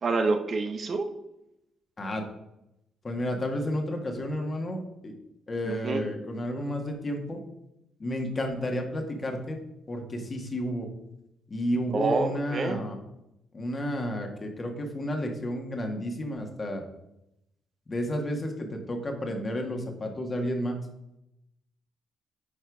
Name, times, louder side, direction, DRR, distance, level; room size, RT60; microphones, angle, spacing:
voice 1, 0.0-1.1 5.7-6.0 11.9-12.8, right 3 dB, 45° right, 7 dB, 0.8 m, -27 dB
voice 2, 3.0-5.1 5.5-7.4 8.0-9.6 9.9-10.9 11.5-13.0 13.5-16.8 17.9-20.8, equal, 30° left, 3 dB, 1.7 m, -31 dB
9.0 x 4.4 x 4.8 m, 0.85 s
cardioid pair, 90°, 0 cm